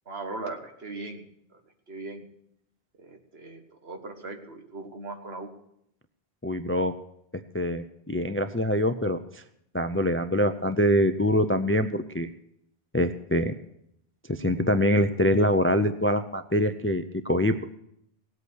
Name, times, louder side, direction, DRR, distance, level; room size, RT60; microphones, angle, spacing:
voice 1, 0.1-1.2 1.5-1.6 1.9-2.2 3.0-5.5, right 3 dB, 75° right, 4 dB, 1.8 m, -39 dB
voice 2, 6.4-6.9 7.3-9.4 9.7-12.3 12.9-13.5 14.3-17.5, left 1 dB, 20° left, 10 dB, 0.4 m, -24 dB
18.0 x 8.3 x 6.3 m, 0.76 s
omnidirectional pair, 1.1 m